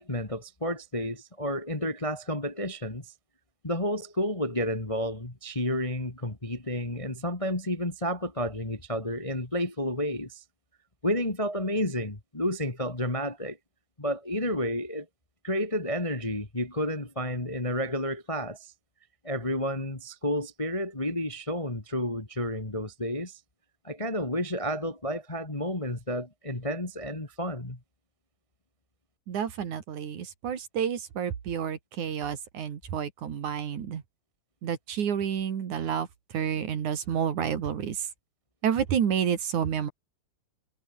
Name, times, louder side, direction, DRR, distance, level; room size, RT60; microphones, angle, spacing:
voice 1, 0.0-3.1 3.6-10.4 11.0-13.6 14.0-15.0 15.4-18.7 19.2-23.4 23.8-27.8, equal, 15° left, 1.5 m, -31 dB
voice 2, 29.3-34.0 34.6-36.1 36.3-38.1 38.6-39.9, right 8 dB, 60° right, 3.5 m, -29 dB
omnidirectional pair, 3.9 m